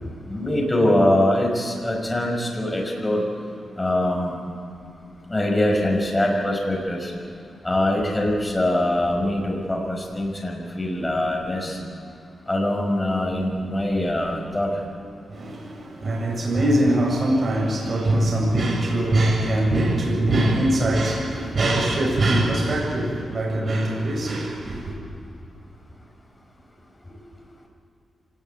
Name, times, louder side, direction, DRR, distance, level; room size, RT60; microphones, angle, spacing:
voice 1, 0.3-3.2 3.8-4.4 5.3-7.1 7.6-11.8 12.5-14.7, left 1 dB, 15° left, 5.9 m, -23 dB
voice 2, 15.3-25.0, right 1 dB, 40° right, 7.6 m, -22 dB
26.0 x 19.5 x 9.6 m
wide cardioid pair, 140°, 0 cm